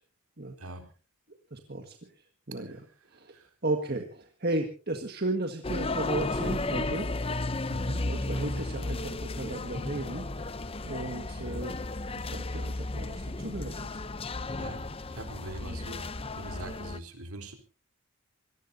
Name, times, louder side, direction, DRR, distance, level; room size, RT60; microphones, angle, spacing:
voice 1, 1.5-7.1 8.0-10.5 10.8-11.8 12.1-14.0, right 2 dB, 45° right, 5 dB, 1.7 m, -35 dB
sound 1, 5.6-17.0, left 2 dB, 25° left, 0.7 m, -34 dB
voice 2, 7.7-8.1 14.6-14.8 15.2-17.5, right 1 dB, 80° right, 5 dB, 4.1 m, -41 dB
26.5 x 18.0 x 2.8 m, 0.37 s
head